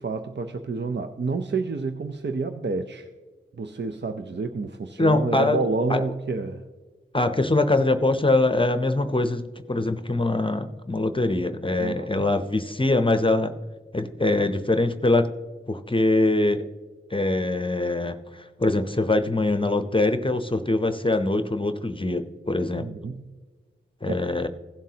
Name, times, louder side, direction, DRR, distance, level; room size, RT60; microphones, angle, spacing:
voice 1, 0.0-3.1 3.5-6.6 11.8-12.3 22.8-23.2 24.1-24.2, right 4 dB, 60° right, 6 dB, 0.6 m, -29 dB
voice 2, 5.0-5.6 5.9-6.0 7.1-13.5 13.9-15.3 15.7-16.7 17.1-22.9 24.0-24.5, left 2 dB, 25° left, 9 dB, 0.6 m, -23 dB
16.5 x 7.3 x 2.8 m, 1.3 s
wide cardioid pair, 55°, 21 cm